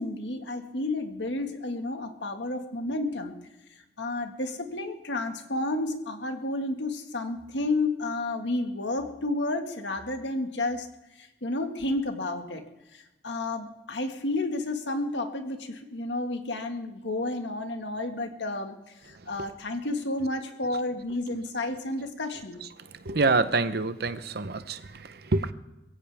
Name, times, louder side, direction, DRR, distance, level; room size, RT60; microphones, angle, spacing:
voice 1, 0.0-3.3 4.0-10.9 11.2-12.6 12.9-22.6, left 2 dB, 80° left, 5 dB, 1.8 m, -31 dB
voice 2, 23.0-25.5, right 3 dB, 60° right, 12 dB, 0.8 m, -26 dB
22.0 x 16.0 x 3.5 m, 0.98 s
head